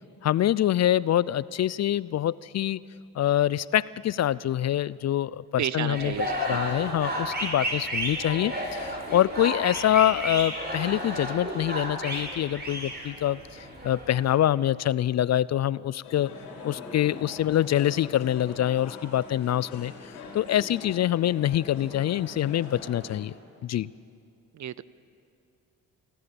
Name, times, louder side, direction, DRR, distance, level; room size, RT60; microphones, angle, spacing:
voice 1, 0.2-2.8 3.2-6.1 6.4-16.3 16.6-19.9 20.3-23.3 23.6-23.9, left 12 dB, 45° left, 21 dB, 0.4 m, -25 dB
voice 2, 5.6-6.6 24.5-24.8, right 10 dB, 50° right, 18 dB, 0.7 m, -32 dB
sound 1, 5.9-14.3, right 1 dB, 25° right, 5.7 m, -32 dB
sound 2, 16.0-23.2, left 3 dB, 90° left, 3.9 m, -43 dB
27.0 x 14.0 x 7.0 m, 2.4 s
supercardioid pair, 60°, 37 cm